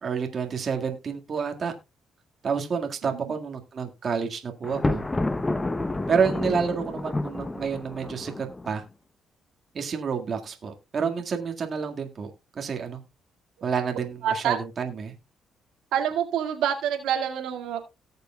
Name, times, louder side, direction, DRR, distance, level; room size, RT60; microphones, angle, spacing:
voice 1, 0.0-1.7 2.4-5.0 6.1-8.8 9.7-13.0 13.6-15.1, right 6 dB, 50° right, 4 dB, 1.8 m, -29 dB
Thunder, 4.6-8.8, left 2 dB, 20° left, 0.7 m, -29 dB
voice 2, 14.2-14.6 15.9-17.8, right 9 dB, 90° right, 4 dB, 2.0 m, -27 dB
18.0 x 6.8 x 2.3 m, 0.25 s
cardioid pair, 90°, 0 cm